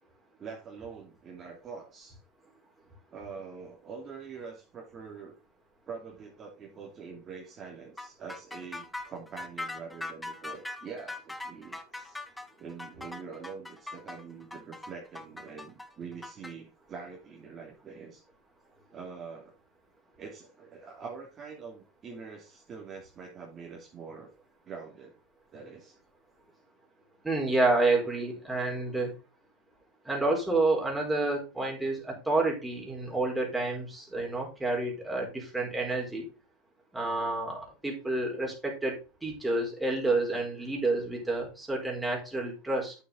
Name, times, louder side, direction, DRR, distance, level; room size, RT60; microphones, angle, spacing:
voice 1, 0.4-2.2 3.1-5.4 5.9-12.2 12.6-18.2 18.9-19.5 20.2-24.3 24.6-25.1 25.5-25.9, right 5 dB, 30° right, -1 dB, 3.0 m, -44 dB
sound 1, 8.0-16.5, left 2 dB, 5° left, 1.1 m, -40 dB
voice 2, 27.2-29.2 30.0-36.3 36.9-43.0, right 2 dB, 10° right, -2 dB, 4.7 m, -29 dB
9.0 x 7.2 x 3.9 m, 0.30 s
hypercardioid pair, 105°, 0 cm